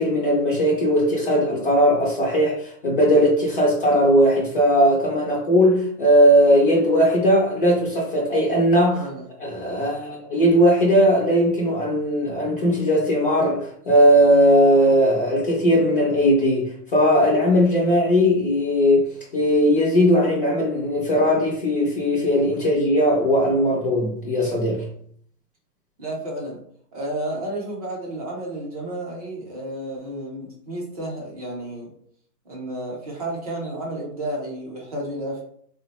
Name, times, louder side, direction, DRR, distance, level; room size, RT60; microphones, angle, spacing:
voice 1, 0.0-9.0 9.4-19.1 19.3-24.8, equal, 35° left, 0.5 m, -18 dB
voice 2, 8.9-9.2 26.0-26.6 26.9-31.9 32.4-35.4, right 1 dB, 25° right, 0.5 m, -31 dB
3.2 x 2.1 x 2.8 m
hypercardioid pair, 155°, 48 cm